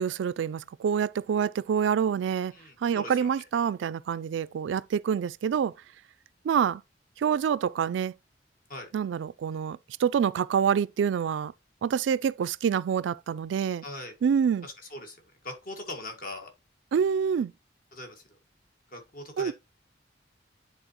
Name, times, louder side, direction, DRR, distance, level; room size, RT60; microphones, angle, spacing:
voice 1, 0.0-2.5 2.8-5.7 6.4-6.8 7.2-8.1 8.9-11.5 11.8-13.8 14.2-14.7 16.9-17.5 19.4-19.5, right 7 dB, 75° right, 0.3 m, -26 dB
voice 2, 2.5-3.1 8.7-8.9 13.8-14.1 14.6-15.2 15.4-16.5 17.9-18.2 18.9-19.5, left 2 dB, 50° left, 1.6 m, -40 dB
10.0 x 3.8 x 2.9 m
head